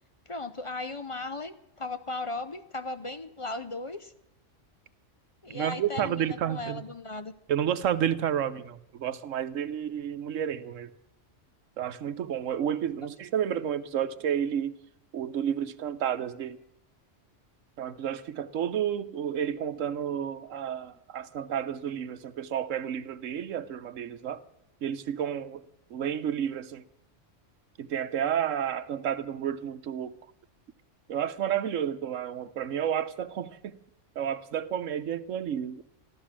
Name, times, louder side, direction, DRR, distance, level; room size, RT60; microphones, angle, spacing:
voice 1, 0.3-4.1 5.4-7.3, left 2 dB, 35° left, 10 dB, 0.6 m, -36 dB
voice 2, 5.5-6.8 7.5-10.9 11.8-14.8 15.1-16.6 17.8-24.4 24.8-25.6 25.9-26.8 27.8-30.2 31.1-33.7 34.2-35.8, right 9 dB, 90° right, 12 dB, 1.2 m, -31 dB
14.0 x 13.5 x 7.4 m, 0.78 s
omnidirectional pair, 1.3 m